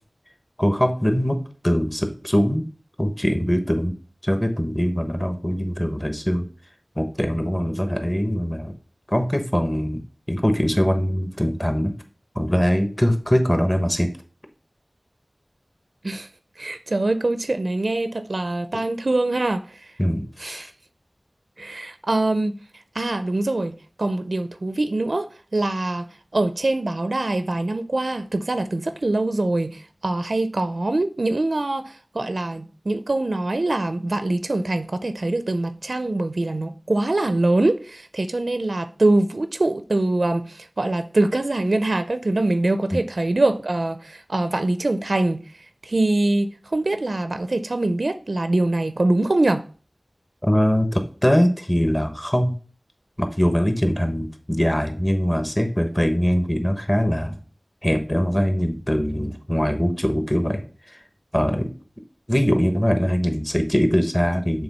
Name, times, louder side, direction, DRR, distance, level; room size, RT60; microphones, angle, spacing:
voice 1, 0.6-2.7 3.0-3.9 4.2-6.5 7.0-8.7 9.1-10.0 10.3-11.9 12.3-14.1 20.0-20.7 42.9-43.0 50.4-52.6 53.2-57.4 57.8-61.0 61.3-61.7 62.3-64.6, equal, 15° left, 1.1 m, -22 dB
voice 2, 16.6-19.9 20.4-20.7 21.6-22.6 22.9-45.4 45.8-49.6, right 2 dB, 75° right, 0.5 m, -23 dB
7.0 x 3.6 x 5.4 m
wide cardioid pair, 55°, 0 cm